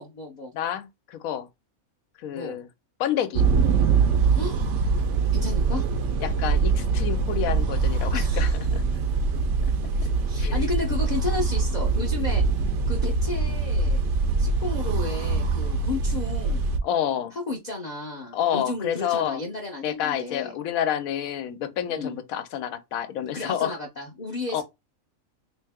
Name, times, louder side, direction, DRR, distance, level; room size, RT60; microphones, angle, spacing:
voice 1, 0.0-0.5 2.3-2.6 4.4-4.6 5.3-5.8 8.1-8.6 10.0-12.4 12.9-14.0 14.4-16.7 17.3-20.5 21.9-22.1 23.3-24.6, left 3 dB, 40° left, 0.6 m, -33 dB
voice 2, 0.5-1.5 2.2-2.7 3.0-3.5 6.2-8.8 10.4-10.6 16.8-17.3 18.3-19.4 19.8-23.8 24.5-24.6, left 10 dB, 80° left, 1.0 m, -29 dB
sound 1, 3.3-16.8, right 4 dB, 65° right, 0.8 m, -23 dB
3.2 x 2.8 x 3.4 m
omnidirectional pair, 1.5 m